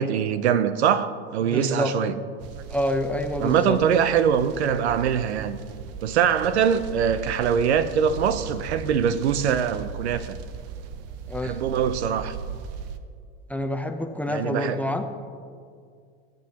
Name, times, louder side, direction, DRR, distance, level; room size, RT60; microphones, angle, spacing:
voice 1, 0.0-2.1 3.4-5.6 6.0-10.4 11.4-12.4 14.3-14.8, right 8 dB, 90° right, 0.7 m, -23 dB
voice 2, 1.5-1.9 2.7-3.8 11.3-11.6 13.5-15.0, left 1 dB, 5° left, 0.6 m, -27 dB
sound 1, 2.4-13.0, right 7 dB, 50° right, 0.8 m, -38 dB
20.0 x 7.8 x 2.9 m
hypercardioid pair, 105°, 32 cm